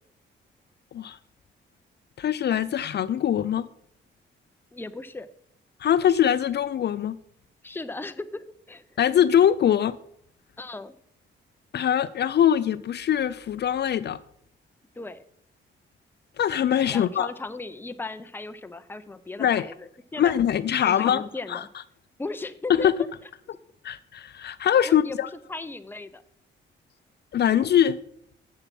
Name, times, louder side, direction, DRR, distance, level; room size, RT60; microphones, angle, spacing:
voice 1, 2.2-3.7 5.8-7.2 9.0-10.0 11.7-14.2 16.4-17.3 19.4-19.7 20.2-21.6 22.7-22.9 23.8-25.3 27.3-28.0, left 9 dB, 55° left, 0.4 m, -22 dB
voice 2, 4.7-5.3 7.6-8.8 10.6-10.9 15.0-15.2 16.9-20.4 20.8-21.7 22.2-22.9 24.9-25.2 25.5-26.2, left 3 dB, 10° left, 0.6 m, -37 dB
7.3 x 6.7 x 5.9 m
cardioid pair, 100°, 21 cm